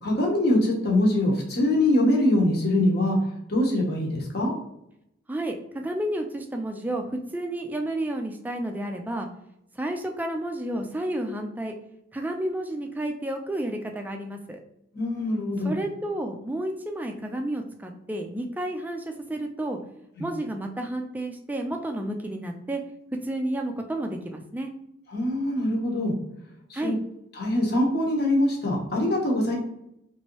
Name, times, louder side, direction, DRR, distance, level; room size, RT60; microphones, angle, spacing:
voice 1, 0.0-3.2 3.5-4.5 14.9-15.7 20.2-20.3 25.1-26.1 26.7-26.9 27.4-29.6, left 1 dB, 55° left, -1 dB, 0.9 m, -23 dB
voice 2, 5.3-9.3 9.8-11.7 12.1-14.6 15.6-19.8 20.2-22.8 23.2-24.7 26.7-27.0, right 1 dB, 10° right, 4 dB, 0.3 m, -31 dB
3.0 x 2.6 x 2.9 m, 0.79 s
head